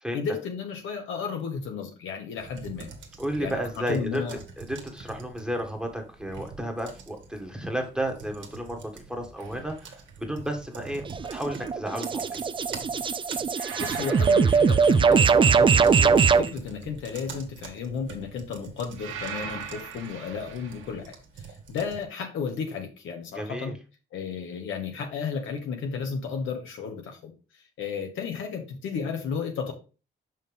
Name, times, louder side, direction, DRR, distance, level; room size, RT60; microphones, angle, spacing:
voice 1, 0.1-2.9 3.4-4.4 13.8-21.1 21.4-23.7 24.1-27.3 27.8-29.7, left 6 dB, 80° left, 3 dB, 1.5 m, -33 dB
sound 1, 2.4-22.0, right 5 dB, 65° right, 1.5 m, -45 dB
voice 2, 3.2-4.2 4.6-11.0 11.3-12.4 23.3-23.7, equal, 5° right, 2 dB, 1.5 m, -32 dB
sound 2, 9.4-9.7 13.5-15.7 19.0-21.0, right 7 dB, 90° right, 1.1 m, -40 dB
sound 3, 11.1-16.5, right 5 dB, 25° right, 0.4 m, -21 dB
5.7 x 5.2 x 3.5 m, 0.34 s
cardioid pair, 90°, 20 cm